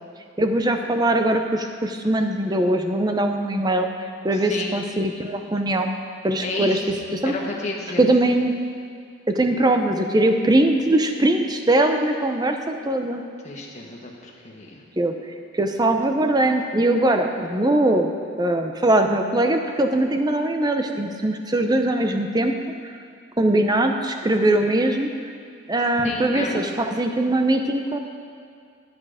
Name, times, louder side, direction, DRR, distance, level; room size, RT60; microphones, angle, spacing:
voice 1, 0.4-3.9 4.2-5.9 6.2-6.8 7.1-7.3 8.0-8.6 9.3-13.2 15.0-15.1 15.5-18.1 18.4-22.5 22.8-22.9 23.4-25.1 25.7-28.0, right 1 dB, 20° right, 5 dB, 0.6 m, -21 dB
voice 2, 4.3-4.8 6.4-6.8 7.2-8.0 13.4-14.8 26.0-26.6, left 3 dB, 35° left, -2 dB, 1.5 m, -31 dB
10.5 x 9.7 x 5.0 m, 2.2 s
head